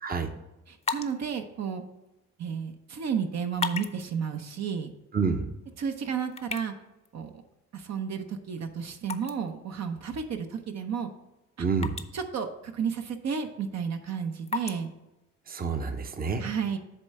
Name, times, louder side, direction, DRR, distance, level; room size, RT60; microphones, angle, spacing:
sound 1, 0.6-16.1, left 5 dB, 20° left, 0.6 m, -42 dB
voice 1, 0.7-1.8 2.4-4.9 5.8-6.7 7.1-7.3 7.7-11.1 11.6-11.7 12.1-14.9 16.4-16.8, right 6 dB, 60° right, 6 dB, 0.9 m, -32 dB
voice 2, 5.1-5.5 11.6-12.0 15.5-16.5, right 5 dB, 30° right, 7 dB, 0.8 m, -28 dB
8.2 x 3.3 x 6.4 m, 0.97 s
cardioid pair, 90°, 30 cm